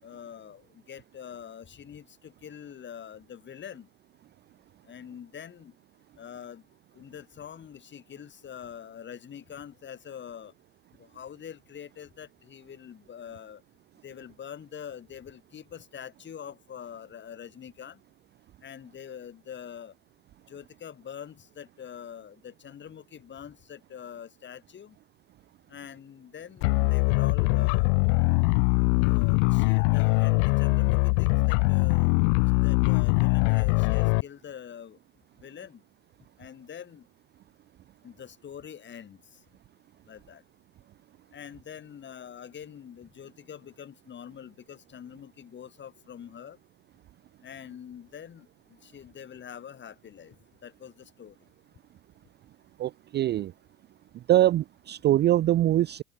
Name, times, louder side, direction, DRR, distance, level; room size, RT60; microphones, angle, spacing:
voice 1, 0.0-3.9 4.9-5.7 6.2-6.6 6.9-10.5 11.0-13.6 14.0-18.0 18.6-19.9 20.5-25.0 25.7-27.9 29.0-32.1 32.6-35.0 35.4-35.8 36.4-37.0 38.0-39.2 40.1-40.4 41.3-46.6 47.4-50.4 50.6-51.4, left 8 dB, 25° left, 4.5 m, -44 dB
sound 1, 26.6-34.2, left 37 dB, 50° left, 0.8 m, -22 dB
voice 2, 52.8-53.5 54.3-56.0, right 13 dB, 25° right, 0.7 m, -23 dB
hypercardioid pair, 115°, 44 cm